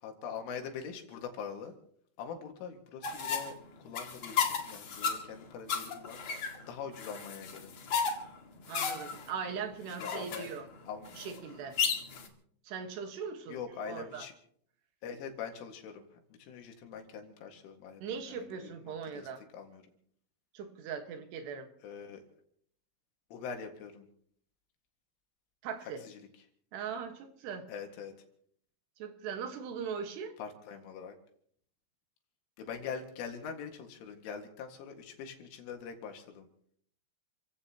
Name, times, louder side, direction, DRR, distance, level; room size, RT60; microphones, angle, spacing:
voice 1, 0.0-1.8 2.2-3.5 3.8-7.7 10.0-10.5 10.9-11.1 13.5-14.3 15.0-19.8 21.8-22.2 23.3-24.1 26.0-26.2 27.7-28.1 30.4-31.1 32.6-36.5, left 6 dB, 75° left, 4 dB, 4.3 m, -43 dB
sound 1, 3.0-12.3, left 6 dB, 55° left, 2.0 m, -35 dB
voice 2, 8.7-10.7 11.1-11.8 12.6-14.3 18.0-19.4 20.5-21.7 25.6-26.0 26.7-27.7 29.0-30.3, right 6 dB, 65° right, 6 dB, 3.2 m, -40 dB
29.5 x 16.5 x 2.9 m, 0.64 s
omnidirectional pair, 5.7 m